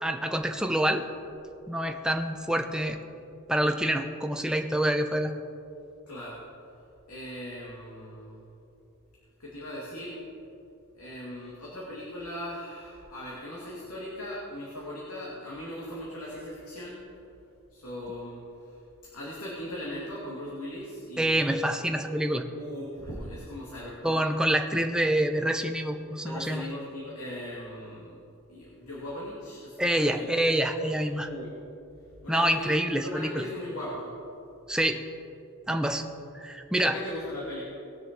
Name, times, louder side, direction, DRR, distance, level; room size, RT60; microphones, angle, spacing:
voice 1, 0.0-1.0 1.7-3.0 3.5-5.3 21.2-22.4 24.0-26.7 29.8-31.3 32.3-33.5 34.7-35.0 35.7-36.0 36.3-37.0, right 1 dB, 5° right, 5 dB, 0.6 m, -26 dB
voice 2, 6.1-6.4 7.1-8.3 9.4-10.2 11.0-16.9 17.7-18.4 19.1-21.6 22.5-24.2 26.2-28.1 28.5-30.3 30.8-31.5 32.2-34.1 36.8-37.6, left 1 dB, 80° left, -6 dB, 2.3 m, -39 dB
19.5 x 6.6 x 4.5 m, 2.7 s
head